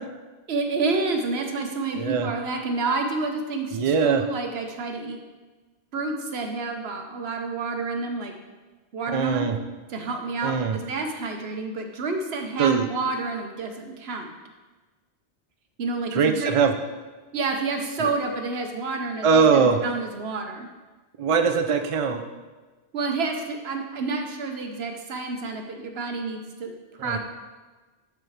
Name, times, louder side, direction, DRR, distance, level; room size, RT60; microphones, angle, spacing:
voice 1, 0.5-5.2 5.9-8.3 8.9-9.5 9.9-14.3 15.8-16.6 17.3-20.7 22.9-27.2, right 3 dB, 65° right, 4 dB, 1.1 m, -29 dB
voice 2, 2.0-2.3 3.7-4.2 9.1-9.5 10.4-10.8 12.6-12.9 16.1-16.7 18.0-18.1 19.2-19.8 21.2-22.2 27.0-27.2, right 5 dB, 45° right, 6 dB, 0.4 m, -21 dB
12.0 x 4.8 x 3.2 m, 1.3 s
omnidirectional pair, 1.1 m